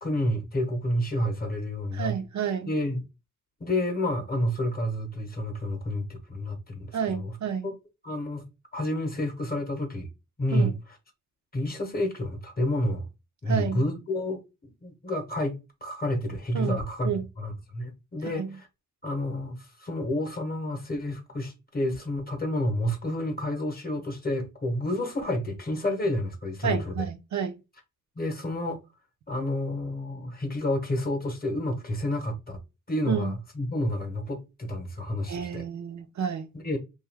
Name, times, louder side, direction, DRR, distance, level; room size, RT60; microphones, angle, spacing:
voice 1, 0.0-2.2 2.7-3.0 3.6-7.4 7.6-7.7 8.0-8.4 8.7-10.1 10.4-10.8 11.5-13.1 13.4-17.1 17.4-18.7 19.0-27.1 28.2-28.8 29.3-32.6 32.9-35.7 36.5-36.8, left 1 dB, 30° left, 0.7 m, -29 dB
voice 2, 1.9-2.7 6.9-7.7 10.5-10.7 13.5-13.8 16.5-16.8 17.0-17.2 18.2-18.6 26.6-27.6 33.1-33.3 35.3-36.5, right 7 dB, 60° right, 0.4 m, -30 dB
2.7 x 2.3 x 3.1 m
wide cardioid pair, 135°, 33 cm